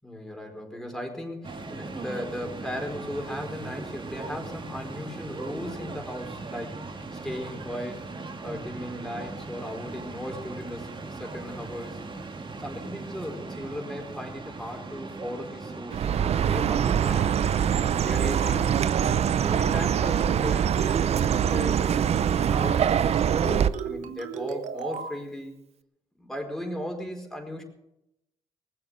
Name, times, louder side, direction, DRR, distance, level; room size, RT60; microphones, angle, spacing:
voice 1, 0.0-8.1 8.4-12.0 12.6-17.6 18.0-18.8 19.3-22.8 23.3-25.5 26.2-27.6, left 1 dB, 5° left, 2 dB, 4.7 m, -37 dB
sound 1, 1.4-18.1, right 3 dB, 40° right, 2.2 m, -39 dB
Chirp tweet, 15.9-23.7, right 9 dB, 55° right, 0.6 m, -24 dB
sound 2, 18.3-18.6 18.9-19.2 19.5-19.8 20.1-20.4 20.7-21.0 21.3-21.6 21.9-22.2 22.5-25.2, right 7 dB, 75° right, 1.1 m, -36 dB
19.5 x 7.9 x 7.9 m, 0.87 s
supercardioid pair, 60°, 13 cm